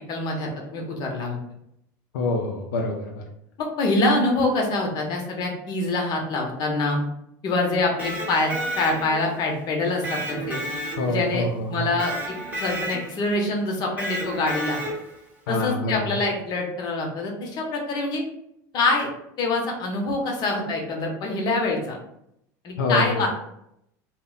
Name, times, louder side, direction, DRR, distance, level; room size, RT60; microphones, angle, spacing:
voice 1, 0.1-1.4 3.6-7.0 7.4-8.5 8.8-10.6 11.1-14.8 15.5-18.2 18.7-19.1 19.4-22.0 22.6-23.3, left 2 dB, 45° left, 1 dB, 0.8 m, -25 dB
voice 2, 2.1-3.2 11.0-11.9 15.5-16.2 22.8-23.2, left 2 dB, 90° left, 0 dB, 0.4 m, -26 dB
Electric guitar, 7.8-9.3 10.0-11.4 12.0-13.3 14.0-15.2, right 1 dB, 15° right, 0.8 m, -31 dB
2.1 x 2.0 x 3.7 m, 0.77 s
supercardioid pair, 100°, 10 cm